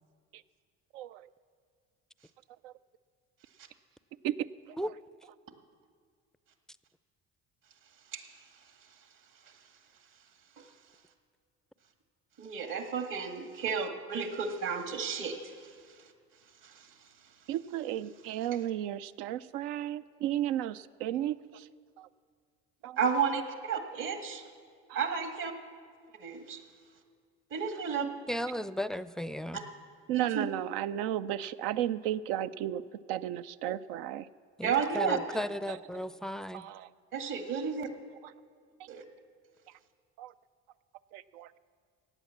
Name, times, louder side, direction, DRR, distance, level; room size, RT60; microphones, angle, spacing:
voice 1, 0.9-1.3 2.6-2.7 4.2-4.3 4.7-4.8 17.5-21.7 22.0-22.1 22.8-23.0 23.9-24.1 24.9-25.0 28.0-28.1 30.1-32.8 33.1-34.3 35.7-35.8 36.5-36.9 37.5-37.6 38.2-38.3 40.2-40.3 41.1-41.5, right 12 dB, 80° right, 14 dB, 0.5 m, -34 dB
voice 2, 12.4-15.4 16.6-16.7 23.0-24.4 24.9-25.5 26.2-26.6 27.5-28.1 30.1-30.5 34.6-35.2 37.1-37.9 38.9-39.0, right 6 dB, 65° right, 5 dB, 2.0 m, -32 dB
voice 3, 28.3-29.6 34.6-36.7, equal, ahead, 15 dB, 0.4 m, -35 dB
16.0 x 9.1 x 7.3 m, 2.1 s
hypercardioid pair, 65°, 35 cm